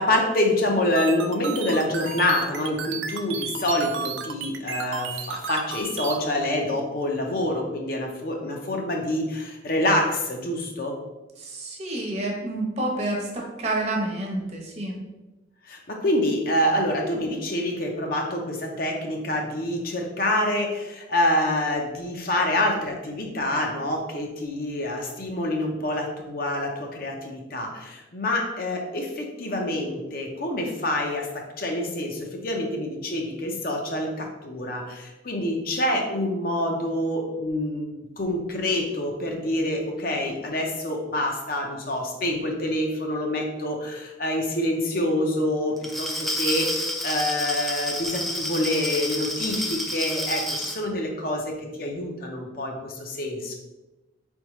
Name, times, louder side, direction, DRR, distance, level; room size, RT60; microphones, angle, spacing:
voice 1, 0.0-10.9 15.7-53.5, left 1 dB, 50° left, 1 dB, 0.6 m, -26 dB
sound 1, 1.0-6.2, right 6 dB, 80° right, 0.4 m, -33 dB
voice 2, 11.4-15.0, right 1 dB, 35° right, -1 dB, 0.8 m, -29 dB
Glass, 45.8-50.8, equal, ahead, 0.3 m, -29 dB
4.4 x 3.5 x 3.0 m, 1.0 s
head